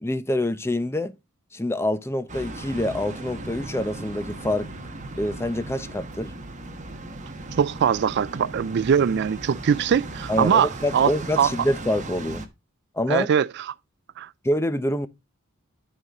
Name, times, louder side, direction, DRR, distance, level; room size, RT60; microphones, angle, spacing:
voice 1, 0.0-1.1 1.5-4.7 5.2-6.3 10.3-12.4 12.9-13.3 14.4-15.1, left 1 dB, 10° left, 0.7 m, -26 dB
sound 1, 2.3-12.5, right 2 dB, 35° right, 1.2 m, -37 dB
voice 2, 7.6-11.1 11.4-11.5 13.1-13.7 14.2-14.3, right 7 dB, 55° right, 0.3 m, -22 dB
12.5 x 4.2 x 3.6 m
head